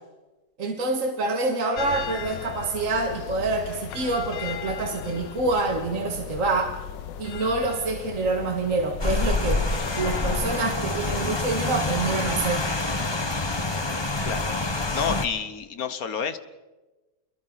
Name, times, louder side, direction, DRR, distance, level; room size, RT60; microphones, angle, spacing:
voice 1, 0.6-6.7 7.2-12.7, right 3 dB, 50° right, 2 dB, 2.1 m, -26 dB
sound 1, 1.8-12.0, left 10 dB, 85° left, 1.5 m, -37 dB
Rain, 9.0-15.3, left 2 dB, 20° left, 0.9 m, -27 dB
voice 2, 14.3-16.4, left 6 dB, 60° left, 11 dB, 1.5 m, -30 dB
30.0 x 22.0 x 4.0 m, 1.1 s
omnidirectional pair, 1.9 m